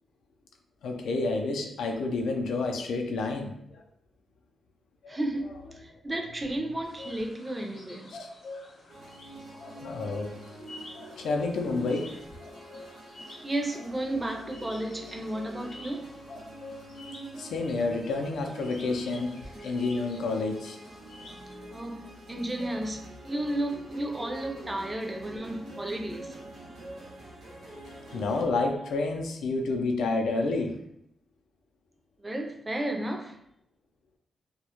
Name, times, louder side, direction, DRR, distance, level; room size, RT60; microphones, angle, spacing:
voice 1, 0.8-3.8 5.0-5.2 8.2-8.3 9.8-10.3 11.2-12.1 12.6-12.7 17.4-20.8 28.1-30.8, left 3 dB, 90° left, 2 dB, 0.4 m, -29 dB
voice 2, 5.1-8.1 13.4-16.1 21.7-27.0 32.2-33.4, right 1 dB, 20° right, 3 dB, 0.4 m, -33 dB
sound 1, 6.8-21.5, left 2 dB, 65° left, 0.7 m, -48 dB
sound 2, 8.9-28.4, right 1 dB, 85° right, 0.6 m, -45 dB
2.2 x 2.0 x 2.8 m, 0.76 s
cardioid pair, 85°, 0 cm